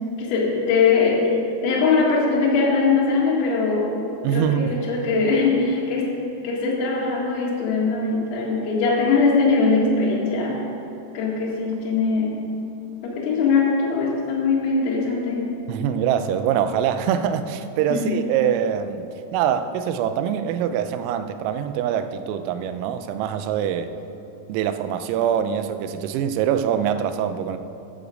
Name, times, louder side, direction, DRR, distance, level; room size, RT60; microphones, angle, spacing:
voice 1, 0.2-1.3 1.6-4.0 4.3-6.2 6.4-10.6 11.1-12.4 13.0-15.5 17.9-18.2, left 4 dB, 80° left, -4 dB, 4.3 m, -21 dB
voice 2, 4.2-4.7 15.7-19.1 19.3-23.9 24.5-27.6, right 9 dB, 90° right, 10 dB, 3.3 m, -24 dB
13.5 x 10.0 x 5.0 m, 2.9 s
omnidirectional pair, 5.9 m